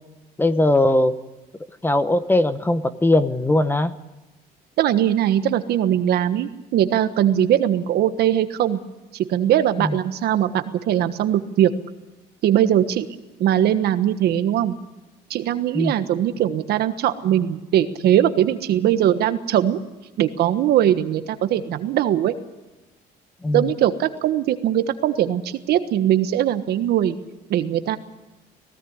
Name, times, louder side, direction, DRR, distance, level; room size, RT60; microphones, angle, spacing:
voice 1, 0.4-1.2 1.8-3.9 9.8-10.0 15.7-15.9 23.4-23.7, left 1 dB, 10° left, 12 dB, 1.0 m, -19 dB
voice 2, 4.8-8.8 9.1-11.7 12.4-13.1 13.4-14.7 15.3-19.8 20.2-22.3 23.5-27.2 27.5-28.0, right 11 dB, 70° right, 10 dB, 1.4 m, -20 dB
18.5 x 17.0 x 9.6 m, 1.1 s
cardioid pair, 110°, 17 cm